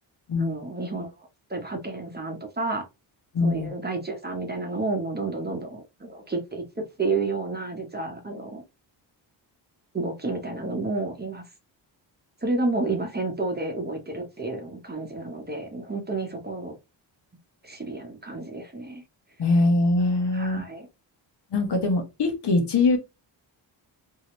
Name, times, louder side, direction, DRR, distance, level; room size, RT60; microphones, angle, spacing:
voice 1, 0.4-1.1 1.5-2.8 3.4-8.6 9.9-11.4 12.4-16.8 17.6-19.0 20.3-20.9, right 3 dB, 20° right, 0.9 m, -30 dB
voice 2, 3.3-3.7 19.4-20.6 21.5-23.0, left 3 dB, 60° left, 1.1 m, -22 dB
2.8 x 2.7 x 3.0 m
cardioid pair, 70°, 47 cm